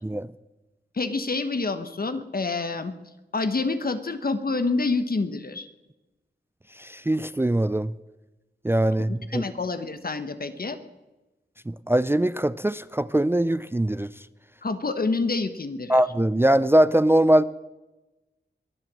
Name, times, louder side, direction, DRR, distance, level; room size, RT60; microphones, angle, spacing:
voice 1, 0.9-2.9 3.3-5.7 9.1-10.8 14.6-16.0, left 3 dB, 55° left, 10 dB, 1.2 m, -27 dB
voice 2, 6.8-7.9 8.6-9.4 11.7-14.1 15.9-17.4, right 1 dB, 15° right, 16 dB, 0.4 m, -22 dB
21.5 x 7.8 x 7.6 m, 1.1 s
wide cardioid pair, 60°, 18 cm